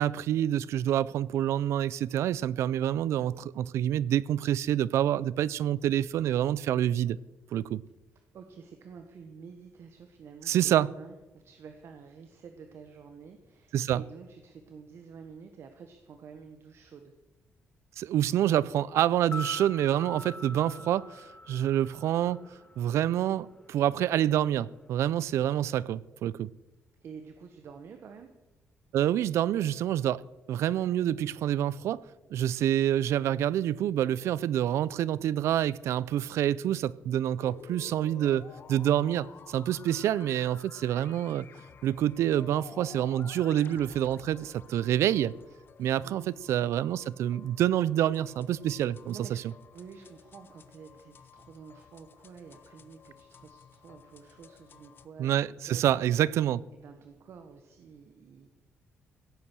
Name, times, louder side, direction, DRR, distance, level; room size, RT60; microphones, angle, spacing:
voice 1, 0.0-7.2 7.5-7.8 10.5-10.9 13.7-14.0 18.0-22.5 22.8-26.5 28.9-30.2 30.5-32.0 32.3-41.5 41.8-45.3 45.8-49.2 55.2-56.6, right 11 dB, 80° right, 21 dB, 0.5 m, -27 dB
voice 2, 8.1-17.1 27.0-28.3 46.0-46.4 49.0-49.4 49.7-56.2 56.7-58.5, right 6 dB, 65° right, 6 dB, 1.4 m, -49 dB
sound 1, 19.2-23.3 23.6-23.7, left 1 dB, 25° left, 0.7 m, -43 dB
sound 2, 37.4-55.1, left 6 dB, 50° left, 0.9 m, -52 dB
16.5 x 8.7 x 6.2 m, 1.1 s
cardioid pair, 110°, 5 cm